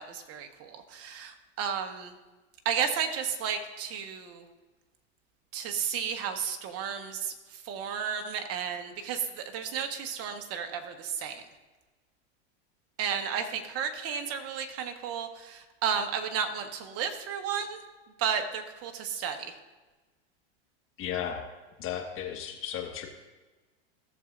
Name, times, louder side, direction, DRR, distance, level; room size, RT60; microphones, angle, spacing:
voice 1, 0.0-2.1 2.6-4.4 5.5-11.4 13.0-17.8 18.2-19.5, right 7 dB, 45° right, 6 dB, 1.3 m, -33 dB
voice 2, 21.0-21.4 21.8-23.1, left 9 dB, 35° left, 3 dB, 1.6 m, -34 dB
16.0 x 7.1 x 2.6 m, 1.2 s
hypercardioid pair, 110°, 34 cm